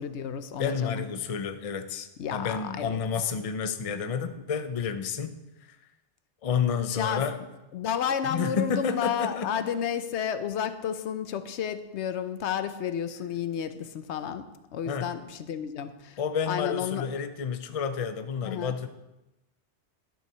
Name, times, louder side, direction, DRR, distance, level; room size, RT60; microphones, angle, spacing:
voice 1, 0.0-1.1 2.2-3.0 6.9-7.2 7.7-16.2 16.5-17.1 18.4-18.7, left 8 dB, 75° left, 11 dB, 1.0 m, -31 dB
voice 2, 0.6-5.3 6.4-7.4 8.2-9.7 14.9-15.1 16.2-18.9, left 6 dB, 40° left, 8 dB, 0.6 m, -30 dB
12.0 x 4.7 x 6.7 m, 0.98 s
omnidirectional pair, 1.2 m